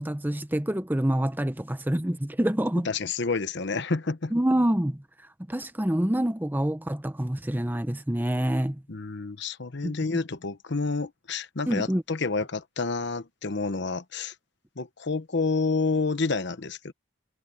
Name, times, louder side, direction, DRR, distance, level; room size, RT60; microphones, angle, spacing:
voice 1, 0.0-2.9 4.3-5.0 5.5-8.8 9.8-9.9 11.7-12.0, right 1 dB, 10° right, 0.8 m, -26 dB
voice 2, 2.8-4.3 8.9-14.3 14.8-16.9, left 3 dB, 60° left, 1.0 m, -29 dB
head